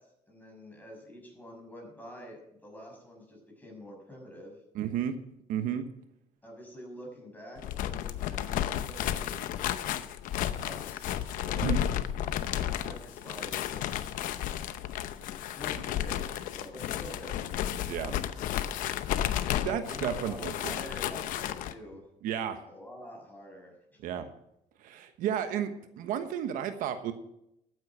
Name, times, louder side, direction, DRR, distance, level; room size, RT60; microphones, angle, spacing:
voice 1, 0.0-4.6 6.4-9.7 10.6-11.7 12.8-14.6 15.5-17.8 19.9-22.0 22.6-24.0, equal, 10° left, 1 dB, 6.4 m, -47 dB
voice 2, 4.7-5.2 5.5-5.8 11.6-11.8 17.9-18.1 19.6-20.7 22.2-22.6 24.0-24.3 24.8-27.1, right 9 dB, 85° right, 8 dB, 1.2 m, -32 dB
sound 1, 7.6-21.7, left 11 dB, 80° left, 0.8 m, -33 dB
13.0 x 9.5 x 6.0 m, 0.80 s
cardioid pair, 100°, 14 cm